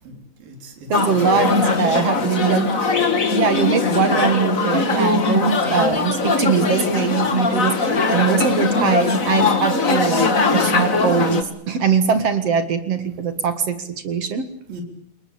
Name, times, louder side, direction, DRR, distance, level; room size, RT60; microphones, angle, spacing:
voice 1, 0.0-1.6 9.6-9.8 14.7-14.8, right 1 dB, 70° right, 4 dB, 5.6 m, -39 dB
sound 1, 0.9-11.4, left 3 dB, 30° left, 1.7 m, -20 dB
voice 2, 0.9-2.7 3.3-14.4, right 6 dB, 50° right, 10 dB, 2.3 m, -22 dB
29.0 x 20.5 x 8.8 m, 0.66 s
omnidirectional pair, 4.3 m